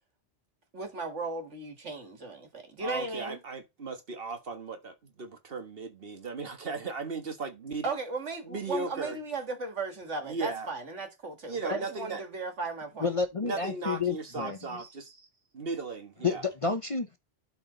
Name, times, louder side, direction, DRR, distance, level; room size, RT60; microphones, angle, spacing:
voice 1, 0.7-3.4 7.8-13.1, right 3 dB, 85° right, 2.3 m, -36 dB
voice 2, 2.8-7.9 8.4-9.2 10.2-10.7 11.5-12.2 13.4-15.1 15.5-16.4, right 3 dB, 55° right, 1.6 m, -36 dB
voice 3, 13.0-14.6 16.2-17.2, left 4 dB, 35° left, 0.7 m, -30 dB
12.0 x 4.4 x 3.9 m
omnidirectional pair, 1.2 m